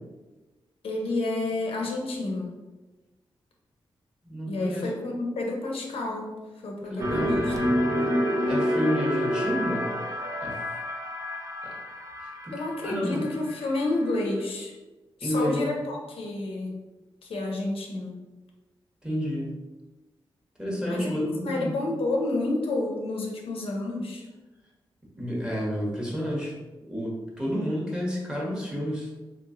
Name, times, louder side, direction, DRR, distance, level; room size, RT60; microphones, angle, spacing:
voice 1, 0.8-2.5 4.5-6.4 6.6-7.5 12.5-14.7 15.2-16.8 17.2-18.1 20.9-21.2 21.4-24.2, left 2 dB, 80° left, 0 dB, 0.7 m, -30 dB
voice 2, 4.2-4.9 6.9-7.4 8.5-9.9 10.4-10.6 11.6-11.7 12.2-12.5 12.8-13.2 15.2-15.8 19.0-19.5 20.6-21.7 25.2-26.6 26.8-29.1, equal, 10° right, -4 dB, 1.0 m, -30 dB
sound 1, 7.0-14.0, equal, 40° right, 0.5 m, -28 dB
3.3 x 3.0 x 2.5 m, 1.2 s
cardioid pair, 85°, 9 cm